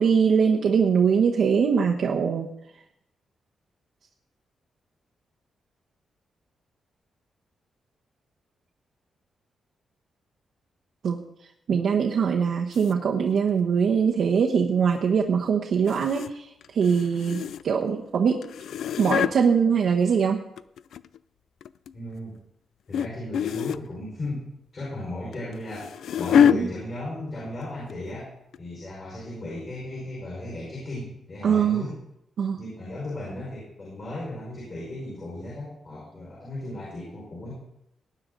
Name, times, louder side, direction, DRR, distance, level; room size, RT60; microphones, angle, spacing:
voice 1, 0.0-2.5 11.0-11.2 11.7-18.4 19.0-20.4 26.5-26.7 31.4-31.9 32.4-32.6, right 6 dB, 60° right, 0 dB, 1.1 m, -22 dB
sound 1, 12.7-12.9 15.9-16.3 16.6-17.8 18.4-19.3 20.3-21.2 21.6-21.9 22.9-23.1 23.3-23.9 25.3-26.6 27.4-27.6 27.9-28.0 28.5-28.6, left 8 dB, 85° left, 0.4 m, -25 dB
voice 2, 21.9-22.3 22.9-24.4 24.7-25.9 26.2-28.3 28.6-32.0 32.6-37.5, left 1 dB, 35° left, -5 dB, 5.3 m, -35 dB
19.0 x 9.7 x 4.0 m, 0.80 s
wide cardioid pair, 175°, 0 cm